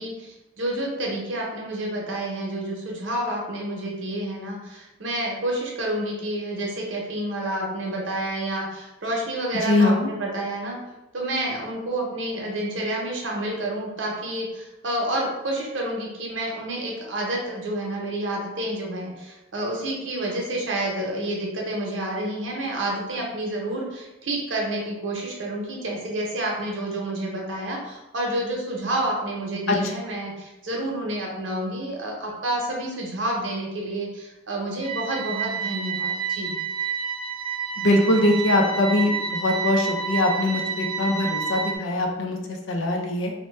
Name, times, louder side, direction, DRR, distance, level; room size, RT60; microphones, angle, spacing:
voice 1, 0.0-10.8 11.1-36.5, right 1 dB, 80° right, -1 dB, 0.8 m, -29 dB
voice 2, 9.6-10.1 29.7-29.8 37.8-43.3, left 2 dB, 85° left, 2 dB, 0.5 m, -22 dB
sound 1, 34.8-41.8, right 6 dB, 25° right, 0.5 m, -29 dB
2.6 x 2.2 x 3.2 m, 0.99 s
head